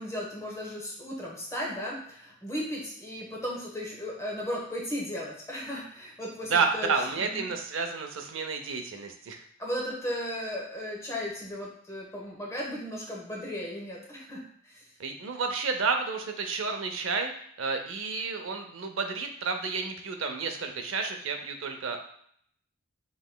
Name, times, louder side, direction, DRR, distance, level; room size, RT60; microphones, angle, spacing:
voice 1, 0.0-7.5 9.6-14.8, equal, 15° left, -4 dB, 1.0 m, -36 dB
voice 2, 6.5-9.4 15.0-17.3 17.6-22.0, right 4 dB, 65° right, 5 dB, 0.6 m, -30 dB
5.7 x 3.1 x 2.2 m, 0.65 s
head